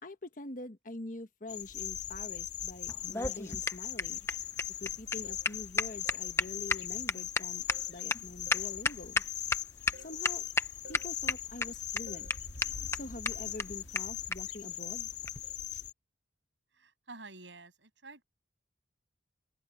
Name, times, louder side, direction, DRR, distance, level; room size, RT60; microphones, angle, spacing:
voice 1, 0.0-4.2 4.8-9.2 10.0-10.5 10.9-12.3 12.9-15.1, left 2 dB, 45° left, 1.3 m, -45 dB
sound 1, 1.5-15.9, left 11 dB, 75° left, 2.9 m, -40 dB
sound 2, 2.9-9.6 9.9-10.0 10.2-10.6 10.9-11.6 12.0-12.1 12.3-12.4 12.6-12.7 12.9-13.0 13.2-13.3 13.6-13.7 13.9-14.0 14.3-14.4 15.2-15.4, left 3 dB, 15° left, 0.6 m, -31 dB
sound 3, 5.2-5.5 6.0-6.4 7.7-8.0 8.5-8.8 9.9-10.2 10.8-11.2 12.1-12.4 14.6-14.9 15.4-15.6, right 1 dB, 60° right, 6.1 m, -56 dB
voice 2, 16.7-18.2, right 3 dB, 85° right, 7.7 m, -50 dB
open air
head